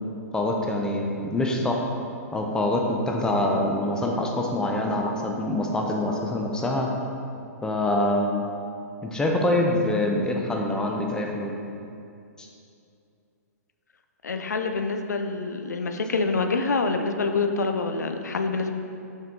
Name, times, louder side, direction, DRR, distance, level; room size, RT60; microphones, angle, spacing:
voice 1, 0.3-1.9 2.3-6.9 7.6-8.5 9.0-11.5 12.4-12.5, left 1 dB, 10° left, 0 dB, 0.6 m, -25 dB
voice 2, 14.2-18.7, left 3 dB, 90° left, 6 dB, 0.4 m, -26 dB
5.6 x 4.6 x 3.6 m, 2.6 s
hypercardioid pair, 125°, 9 cm